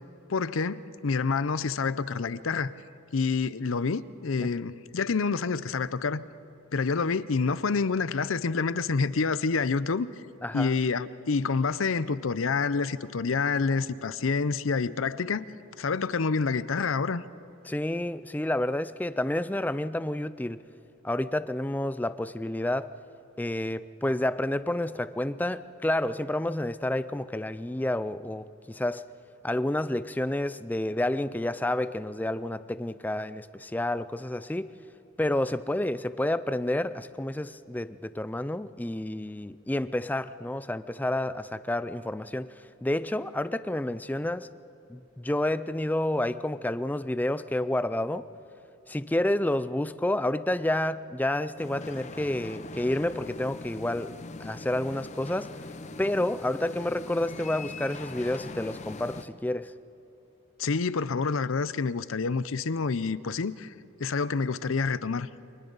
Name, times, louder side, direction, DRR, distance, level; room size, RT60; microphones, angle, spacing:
voice 1, 0.3-2.7 3.1-6.2 6.7-10.1 10.5-15.4 15.8-17.2 60.6-63.7 64.0-65.3, left 4 dB, 75° left, 16 dB, 0.6 m, -28 dB
voice 2, 10.4-10.8 17.6-20.6 21.0-22.9 23.4-29.0 29.4-34.7 35.2-44.5 44.9-48.3 48.9-55.6 56.0-59.7, left 1 dB, 10° left, 14 dB, 0.4 m, -29 dB
sound 1, 51.6-59.2, left 3 dB, 35° left, 0.7 m, -42 dB
29.5 x 24.5 x 4.0 m, 2.9 s
head